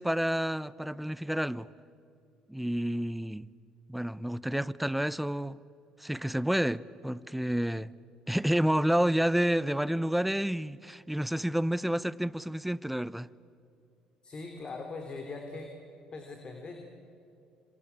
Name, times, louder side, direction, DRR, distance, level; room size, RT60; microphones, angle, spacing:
voice 1, 0.0-1.7 2.5-3.5 3.9-5.6 6.0-7.9 8.3-13.3, equal, 5° right, 0.8 m, -29 dB
voice 2, 14.2-15.7 16.1-16.8, left 3 dB, 40° left, 3.5 m, -41 dB
27.0 x 26.0 x 8.6 m
hypercardioid pair, 65°, 2 cm